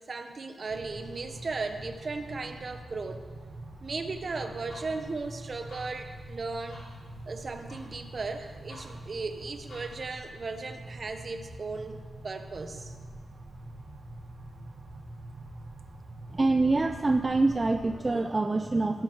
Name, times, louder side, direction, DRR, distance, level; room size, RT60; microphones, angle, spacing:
voice 1, 0.1-3.3 3.8-6.8 7.3-12.9, right 3 dB, 45° right, 7 dB, 1.0 m, -36 dB
sound 1, 0.7-18.1, right 1 dB, 65° right, 1.5 m, -45 dB
sound 2, 4.5-10.1, left 1 dB, 75° left, 4.3 m, -54 dB
voice 2, 16.3-19.0, right 2 dB, 25° right, 8 dB, 0.4 m, -25 dB
17.0 x 7.7 x 4.6 m, 1.5 s
cardioid pair, 100°, 0 cm